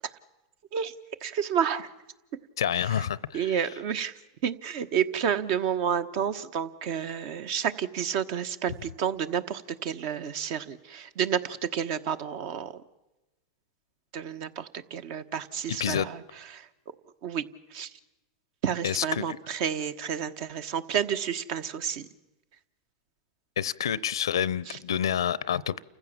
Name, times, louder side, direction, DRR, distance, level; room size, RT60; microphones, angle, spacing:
voice 1, 1.2-1.9 3.3-4.1 4.4-12.7 14.1-16.2 16.5-16.7 17.2-17.4 17.7-17.9 18.6-22.1 24.7-24.8, right 8 dB, 55° right, 12 dB, 1.2 m, -30 dB
voice 2, 2.6-3.6 15.7-16.1 18.8-19.4 23.6-25.8, left 9 dB, 90° left, 23 dB, 0.6 m, -28 dB
29.0 x 15.5 x 7.3 m, 1.0 s
hypercardioid pair, 115°, 2 cm